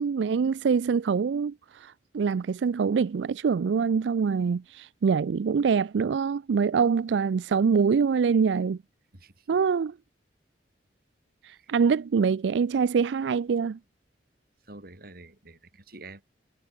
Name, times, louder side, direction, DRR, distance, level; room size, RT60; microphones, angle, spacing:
voice 1, 0.0-8.8 9.5-9.9 11.4-13.8, right 6 dB, 85° right, 0.4 m, -25 dB
voice 2, 9.1-9.5 11.6-11.7 14.7-16.3, right 2 dB, 55° right, 4.9 m, -47 dB
head